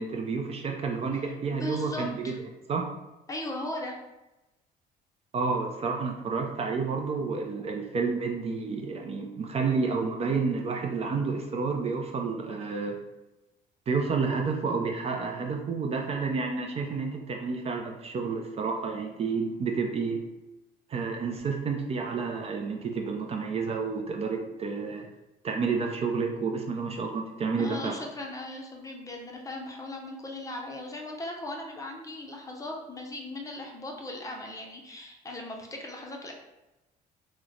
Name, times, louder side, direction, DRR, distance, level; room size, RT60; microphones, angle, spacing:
voice 1, 0.0-2.4 2.7-2.8 5.3-13.0 13.9-20.3 20.9-25.1 25.4-28.0, right 4 dB, 35° right, 2 dB, 0.4 m, -30 dB
voice 2, 1.5-2.4 3.3-4.0 27.6-36.3, left 1 dB, 20° left, 0 dB, 0.6 m, -38 dB
3.0 x 2.1 x 3.8 m, 0.99 s
cardioid pair, 110°, 17 cm